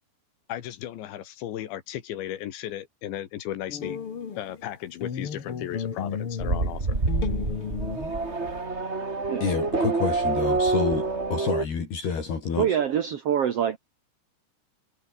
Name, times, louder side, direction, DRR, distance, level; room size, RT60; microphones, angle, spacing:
voice 1, 0.5-4.0 4.4-6.9, left 12 dB, 90° left, 4.2 m, -35 dB
sound 1, 3.7-4.7 5.0-8.5, left 7 dB, 40° left, 2.5 m, -34 dB
Race car auto racing / Accelerating revving vroom, 6.4-11.6, right 3 dB, 20° right, 2.0 m, -27 dB
voice 2, 9.4-12.8, left 5 dB, 65° left, 7.0 m, -28 dB
voice 3, 12.6-13.8, right 9 dB, 55° right, 1.7 m, -25 dB
omnidirectional pair, 5.0 m